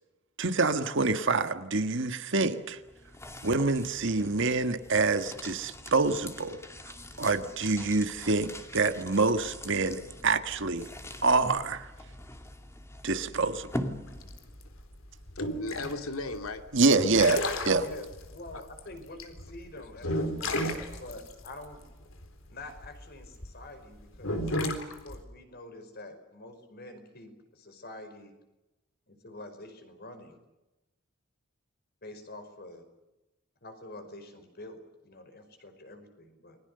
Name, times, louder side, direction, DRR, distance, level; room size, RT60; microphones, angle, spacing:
voice 1, 0.4-2.8 3.4-6.6 7.2-10.9 11.2-11.9 13.0-13.7 16.7-17.8, right 3 dB, 60° right, 9 dB, 1.5 m, -26 dB
sound 1, 2.5-14.7, left 1 dB, 15° left, 2.4 m, -43 dB
sound 2, 14.1-23.5 24.1-25.2, left 1 dB, 65° left, 3.9 m, -33 dB
voice 2, 15.4-17.3 20.1-20.8, left 2 dB, 85° left, 7 dB, 2.6 m, -39 dB
voice 3, 17.8-21.8 22.5-24.5 24.8-28.3 29.1-30.4 32.0-32.8 33.6-36.6, left 2 dB, 50° left, 7 dB, 5.1 m, -46 dB
30.0 x 21.5 x 6.8 m, 1.0 s
head